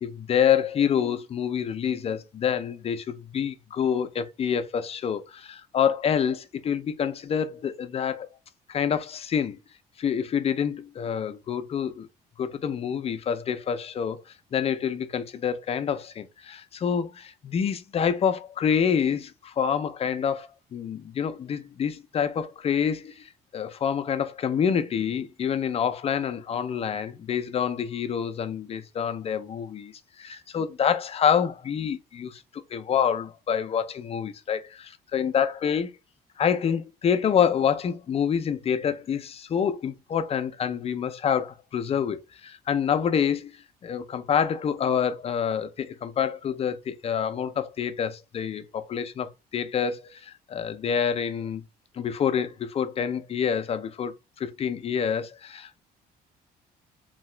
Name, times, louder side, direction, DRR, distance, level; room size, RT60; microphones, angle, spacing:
voice 1, 0.0-8.3 8.7-9.6 10.0-12.1 12.4-14.2 14.5-32.4 32.7-35.9 36.4-43.6 43.8-51.6 51.9-55.8, left 7 dB, 35° left, 0.5 m, -27 dB
2.8 x 2.3 x 3.2 m
cardioid pair, 110°, 17 cm